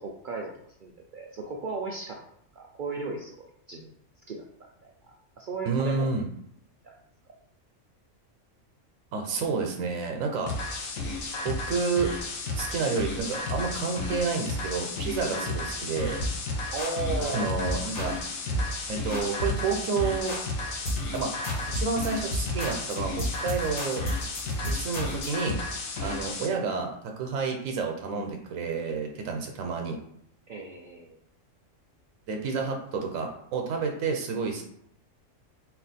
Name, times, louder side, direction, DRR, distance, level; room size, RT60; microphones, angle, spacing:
voice 1, 0.0-2.2 2.5-3.9 4.3-6.1 6.8-6.9 15.3-15.5 16.7-17.5 26.0-26.2 30.5-31.2, right 3 dB, 65° right, 0 dB, 0.5 m, -36 dB
voice 2, 5.6-6.3 9.1-10.5 11.4-12.1 12.6-16.3 17.2-18.1 18.9-20.4 21.1-21.3 21.7-24.0 24.6-25.6 26.0-30.0 32.3-34.6, right 4 dB, 90° right, 2 dB, 1.1 m, -30 dB
sound 1, 10.5-26.5, left 2 dB, 85° left, 1.2 m, -33 dB
sound 2, 16.2-16.4 16.8-17.3 17.6-18.2 18.5-18.8 19.1-19.7 20.0-20.5 20.9-21.2 21.4-25.4, equal, 50° left, 1.5 m, -32 dB
4.2 x 2.4 x 4.1 m, 0.70 s
omnidirectional pair, 1.3 m